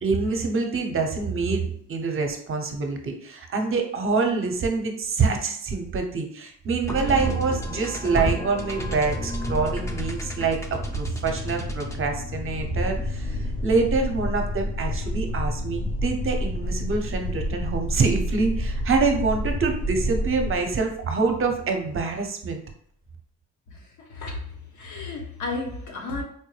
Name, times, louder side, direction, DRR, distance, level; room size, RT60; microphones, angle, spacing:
voice 1, 0.0-22.6, right 4 dB, 45° right, 0.8 m, -26 dB
sound 1, 6.9-14.2, equal, 10° left, 0.6 m, -32 dB
sound 2, 8.8-22.2, left 2 dB, 50° left, 1.1 m, -37 dB
sound 3, 12.6-20.6, equal, 35° left, 0.8 m, -29 dB
voice 2, 24.0-24.4 24.7-26.2, left 3 dB, 75° left, 1.1 m, -32 dB
4.4 x 2.1 x 3.2 m
cardioid pair, 90°, 30 cm